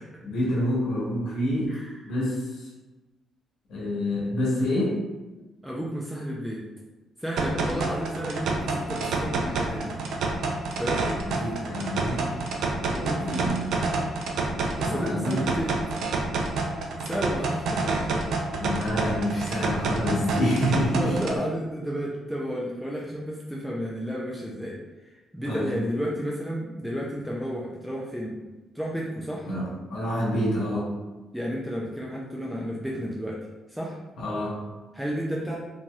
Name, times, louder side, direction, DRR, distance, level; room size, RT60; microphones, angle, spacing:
voice 1, 0.2-1.7 2.1-2.4 3.7-5.0 11.2-12.4 13.2-13.7 14.8-15.4 18.6-21.2 25.5-25.7 29.5-30.9 34.2-34.6, equal, 75° left, -5 dB, 1.0 m, -27 dB
voice 2, 1.7-2.0 5.6-6.6 7.2-10.0 10.8-11.0 11.3-11.5 12.9-13.5 14.8-15.8 17.0-17.8 18.1-18.3 19.3-19.7 20.2-20.4 20.7-24.8 25.3-28.4 28.7-29.5 31.3-33.4 33.7-34.0 34.9-35.6, equal, ahead, -4 dB, 0.4 m, -32 dB
sound 1, 7.4-21.4, right 3 dB, 75° right, 0.4 m, -28 dB
2.9 x 2.7 x 2.3 m, 1.1 s
cardioid pair, 90°, 0 cm